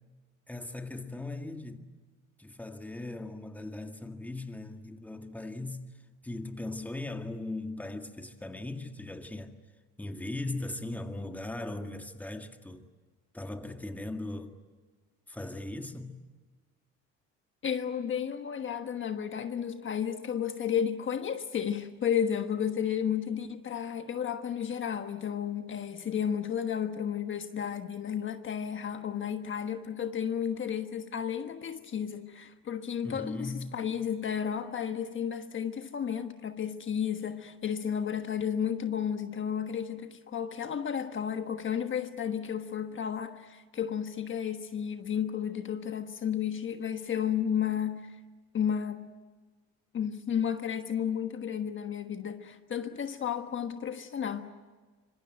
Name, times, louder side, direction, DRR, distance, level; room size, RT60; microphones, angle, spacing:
voice 1, 0.5-1.9 2.4-9.6 10.0-12.9 13.3-14.6 15.3-16.2 33.0-33.8, left 2 dB, 5° left, 2.0 m, -39 dB
voice 2, 17.6-48.2 48.5-49.1 49.9-54.5, left 8 dB, 40° left, 1.4 m, -32 dB
25.5 x 25.0 x 9.1 m
cardioid pair, 115°, 29 cm